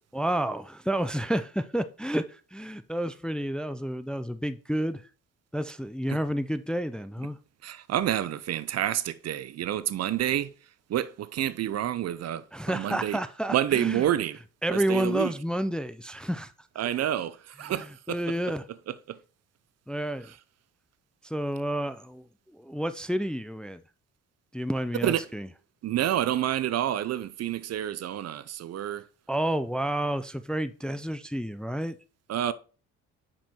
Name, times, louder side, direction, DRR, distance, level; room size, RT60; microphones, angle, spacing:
voice 1, 0.1-5.0 5.5-7.4 12.5-14.1 14.6-16.5 17.6-18.7 19.9-20.3 21.2-22.2 22.5-23.8 24.5-25.5 29.3-32.0, right 1 dB, 5° left, 0.4 m, -30 dB
voice 2, 7.6-10.5 10.9-12.4 12.7-13.2 13.5-14.4 14.7-15.3 16.8-18.2 25.0-25.2 25.8-29.0 32.3-32.5, right 11 dB, 55° right, 0.6 m, -28 dB
5.6 x 5.0 x 4.3 m
cardioid pair, 90°, 30 cm